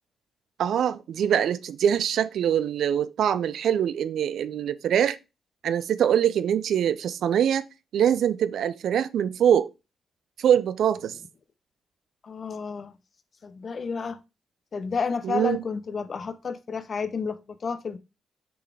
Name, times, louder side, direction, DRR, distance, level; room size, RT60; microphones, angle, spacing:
voice 1, 0.6-5.2 5.6-7.6 7.9-9.7 10.4-11.2 15.2-15.6, right 9 dB, 75° right, 0.4 m, -23 dB
voice 2, 12.2-12.9 13.4-14.2 14.7-18.0, left 5 dB, 55° left, 0.8 m, -31 dB
7.0 x 3.9 x 4.7 m
hypercardioid pair, 45°, 0 cm